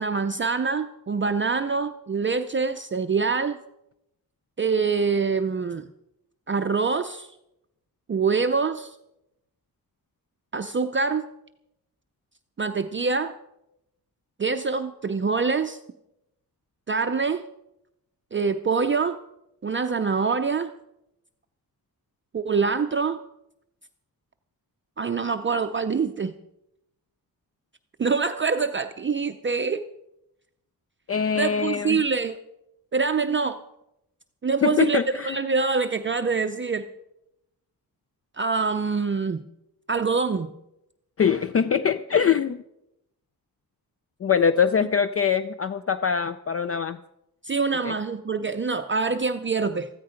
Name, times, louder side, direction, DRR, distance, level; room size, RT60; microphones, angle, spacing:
voice 1, 0.0-3.6 4.6-5.8 6.5-7.3 8.1-9.0 10.5-11.3 12.6-13.3 14.4-15.8 16.9-17.4 18.3-19.2 19.6-20.7 22.3-23.2 25.0-26.3 28.0-29.8 31.4-32.4 32.9-33.6 34.4-35.0 35.3-36.9 38.4-39.4 39.9-40.5 47.4-49.9, right 5 dB, 35° right, 8 dB, 0.5 m, -25 dB
voice 2, 31.1-32.0 34.6-35.4 41.2-42.6 44.2-47.0 47.8-47.9, left 7 dB, 40° left, 12 dB, 0.4 m, -23 dB
14.5 x 14.0 x 5.0 m, 0.85 s
wide cardioid pair, 125°, 36 cm